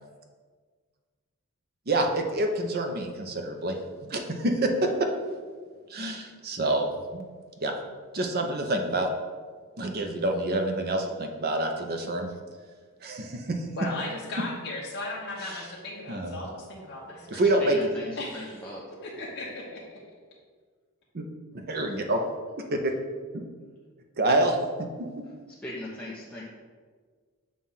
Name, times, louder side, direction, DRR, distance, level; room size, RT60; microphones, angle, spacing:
voice 1, 1.9-3.8 4.0-4.9 5.9-7.2 7.6-7.7 8.1-9.1 9.8-12.3 13.0-13.6 15.4-15.6 16.1-16.3 17.3-17.8 21.1-21.2 21.7-22.2 22.8-22.9 23.3-23.4 24.2-24.6, right 2 dB, 45° right, 4 dB, 0.7 m, -27 dB
voice 2, 13.8-17.4 18.2-19.8, left 2 dB, 50° left, -6 dB, 1.0 m, -37 dB
voice 3, 17.6-18.8 25.6-26.4, left 1 dB, 5° left, -7 dB, 0.7 m, -38 dB
7.3 x 2.5 x 5.6 m, 1.6 s
head